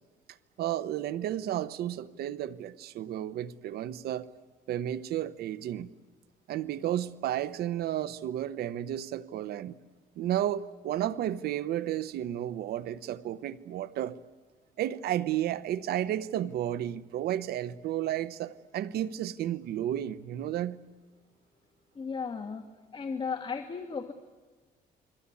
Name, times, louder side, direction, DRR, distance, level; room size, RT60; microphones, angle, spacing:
voice 1, 0.6-4.3 4.7-5.9 6.5-9.8 10.2-14.2 14.8-20.8, right 12 dB, 80° right, 0.9 m, -32 dB
voice 2, 21.9-22.7 22.9-24.1, left 5 dB, 30° left, 1.6 m, -35 dB
29.0 x 22.5 x 8.5 m
cardioid pair, 120°, 16 cm